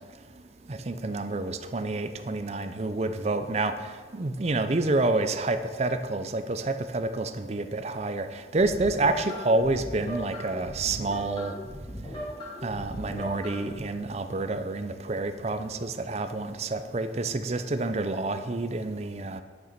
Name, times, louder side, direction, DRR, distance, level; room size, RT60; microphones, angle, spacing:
voice 1, 0.7-3.7 4.1-11.5 12.6-19.4, right 2 dB, 35° right, 9 dB, 0.5 m, -28 dB
sound 1, 8.6-13.8, equal, 30° left, 3.0 m, -38 dB
9.4 x 6.8 x 5.8 m, 1.5 s
head